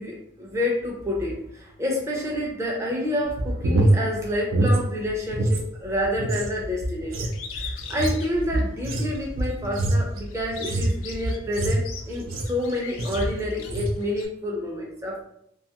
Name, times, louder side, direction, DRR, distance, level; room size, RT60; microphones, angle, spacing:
voice 1, 0.0-15.2, left 1 dB, 15° right, -2 dB, 0.4 m, -29 dB
sound 1, 3.2-5.6 5.9-12.6 13.0-13.3 13.6-14.0, right 1 dB, 80° right, 0.5 m, -25 dB
Bird, 7.3-9.3 9.8-14.3, left 6 dB, 90° left, 0.4 m, -41 dB
2.6 x 2.3 x 2.8 m, 0.74 s
head